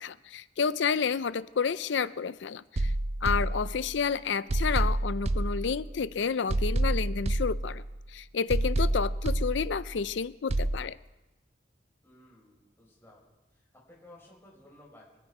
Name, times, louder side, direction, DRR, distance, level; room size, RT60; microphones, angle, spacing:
voice 1, 0.0-2.9 3.2-7.8 8.1-11.0, left 6 dB, 80° left, 17 dB, 0.5 m, -30 dB
sound 1, 2.8-4.0 4.5-6.1 6.5-8.1 8.5-10.1 10.5-10.8, right 1 dB, 35° right, 0.4 m, -29 dB
voice 2, 12.0-13.2 13.5-15.2, left 1 dB, 10° left, -5 dB, 5.2 m, -56 dB
24.0 x 9.0 x 4.9 m, 1.1 s
head